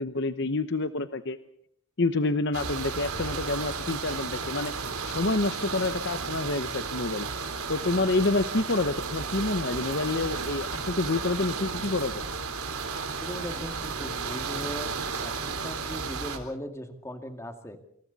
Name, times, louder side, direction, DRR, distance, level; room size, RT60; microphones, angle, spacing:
voice 1, 0.0-1.4 2.0-4.7 5.0-7.3 7.7-12.3, left 2 dB, 55° left, 10 dB, 0.9 m, -28 dB
sound 1, 2.5-16.4, right 5 dB, 85° right, 3.8 m, -33 dB
voice 2, 13.2-14.9 15.2-17.8, equal, 15° left, 5 dB, 2.3 m, -38 dB
28.0 x 26.5 x 4.1 m, 0.70 s
head